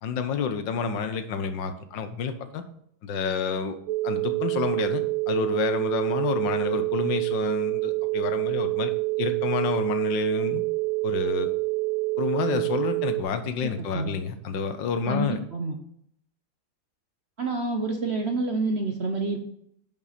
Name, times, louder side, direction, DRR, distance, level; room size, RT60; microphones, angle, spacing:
voice 1, 0.0-2.6 3.0-3.8 4.0-10.6 11.0-11.5 12.2-15.4, left 6 dB, 65° left, 9 dB, 1.5 m, -29 dB
sound 1, 3.9-13.2, right 24 dB, 85° right, 1.4 m, -27 dB
voice 2, 13.8-14.1 15.1-15.8 17.4-19.4, right 3 dB, 55° right, 4 dB, 0.7 m, -28 dB
11.0 x 5.4 x 4.2 m, 0.70 s
omnidirectional pair, 2.3 m